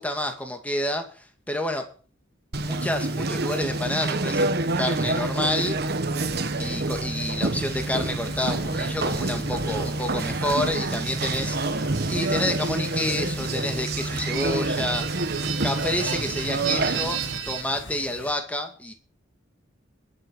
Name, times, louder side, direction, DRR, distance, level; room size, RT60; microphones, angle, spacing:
voice 1, 0.0-1.8 2.6-5.8 6.6-15.1 15.6-17.2 17.5-18.9, left 1 dB, 5° left, 4 dB, 2.2 m, -29 dB
Conversation, 2.5-17.4, right 2 dB, 55° right, 1.3 m, -27 dB
sound 1, 7.7-18.3, left 1 dB, 65° left, 2.2 m, -43 dB
sound 2, 10.9-17.6, right 10 dB, 75° right, 3.0 m, -36 dB
22.0 x 7.8 x 5.5 m, 0.40 s
head